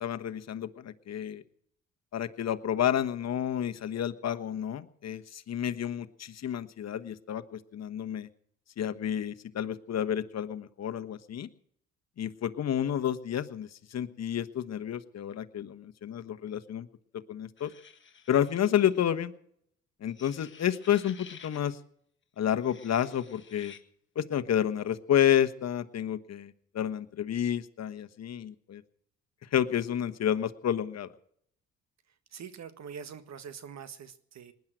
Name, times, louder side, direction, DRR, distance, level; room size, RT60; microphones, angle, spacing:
voice 1, 0.0-1.4 2.1-8.3 8.8-11.5 12.2-16.9 17.3-17.7 18.3-19.3 20.0-21.8 22.4-23.7 24.1-28.8 29.5-31.1, left 10 dB, 55° left, 10 dB, 1.3 m, -30 dB
sound 1, 17.6-19.1 20.1-21.7 22.5-23.8, left 6 dB, 40° left, 1.8 m, -52 dB
voice 2, 32.1-34.5, right 7 dB, 60° right, 11 dB, 1.7 m, -44 dB
20.0 x 10.5 x 6.4 m, 0.67 s
cardioid pair, 75°, 31 cm